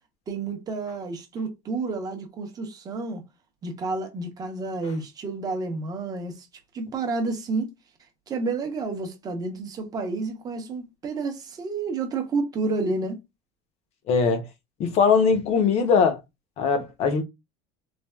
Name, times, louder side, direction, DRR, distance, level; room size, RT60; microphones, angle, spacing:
voice 1, 0.3-3.2 3.6-6.5 6.7-7.8 8.3-13.2, right 3 dB, 25° right, 0.7 m, -30 dB
voice 2, 14.1-14.4 14.8-16.2 16.6-17.2, left 5 dB, 40° left, 0.7 m, -21 dB
3.2 x 2.3 x 2.2 m
cardioid pair, 155°, 16 cm